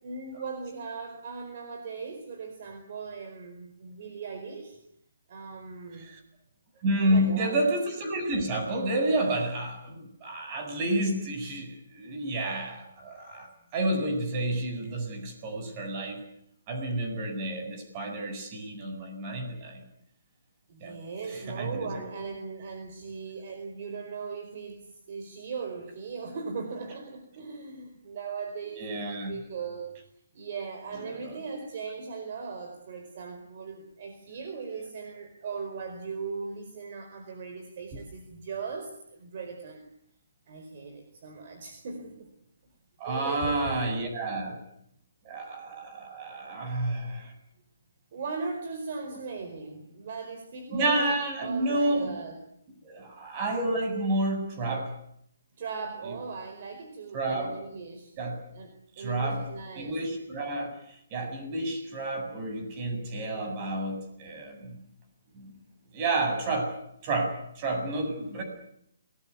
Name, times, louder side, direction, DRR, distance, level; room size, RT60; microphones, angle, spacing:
voice 1, 0.0-4.8 5.3-6.1 7.0-7.6 20.7-29.9 30.3-39.8 40.5-42.3 43.0-43.6 48.1-52.4 55.6-58.1 58.5-60.0, right 5 dB, 40° right, 6 dB, 4.7 m, -39 dB
voice 2, 6.8-13.5 13.7-16.2 16.7-19.8 20.8-21.0 21.3-21.9 28.8-29.4 31.1-31.4 43.0-44.6 45.2-47.3 50.7-52.1 52.8-54.9 57.1-57.6 58.2-58.4 59.0-59.4 59.8-64.8 65.3-65.6 65.9-66.8 67.0-68.4, right 1 dB, 25° right, 5 dB, 7.6 m, -30 dB
27.5 x 20.0 x 8.5 m, 0.73 s
hypercardioid pair, 165°, 0 cm